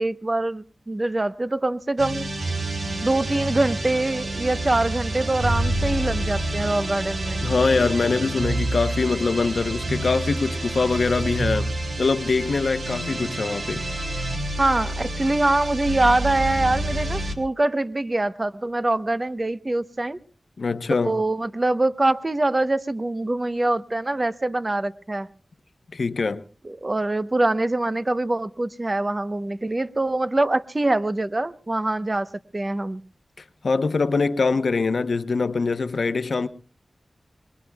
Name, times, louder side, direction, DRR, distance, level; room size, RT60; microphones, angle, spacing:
voice 1, 0.0-2.3 3.0-7.4 14.6-20.2 21.0-25.3 26.6-33.0, right 2 dB, 35° right, 0.9 m, -24 dB
sound 1, 2.0-17.4, right 1 dB, 75° right, 2.0 m, -28 dB
voice 2, 7.4-11.7 12.0-13.9 20.6-21.2 25.9-26.4 33.6-36.5, left 4 dB, 75° left, 0.8 m, -23 dB
24.5 x 22.0 x 2.3 m
wide cardioid pair, 55°, 0 cm